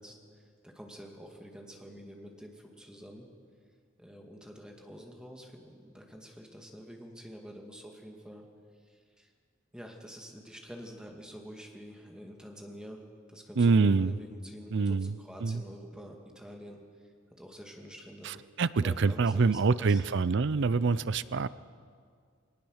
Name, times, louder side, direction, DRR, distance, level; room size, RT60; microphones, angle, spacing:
voice 1, 0.0-3.3 4.0-8.4 8.8-9.3 9.7-13.0 13.3-17.1 17.4-18.4 18.8-20.0, equal, 5° right, 1 dB, 2.1 m, -48 dB
voice 2, 13.6-14.1 14.7-15.1 15.4-15.6 18.2-21.5, right 4 dB, 60° right, 17 dB, 0.5 m, -26 dB
22.0 x 19.0 x 6.5 m, 2.1 s
head